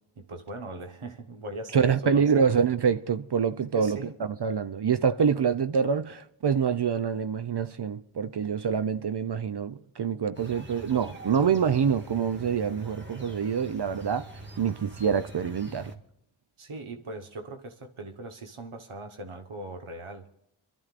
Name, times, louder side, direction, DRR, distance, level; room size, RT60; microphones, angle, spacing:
voice 1, 0.2-2.4 3.7-4.2 16.6-20.3, right 2 dB, 90° right, 1.3 m, -40 dB
voice 2, 1.7-14.3 14.6-15.9, right 7 dB, 55° right, 0.6 m, -26 dB
sound 1, 10.3-16.0, right 2 dB, 20° right, 1.8 m, -43 dB
28.0 x 12.5 x 2.5 m
wide cardioid pair, 60°, 49 cm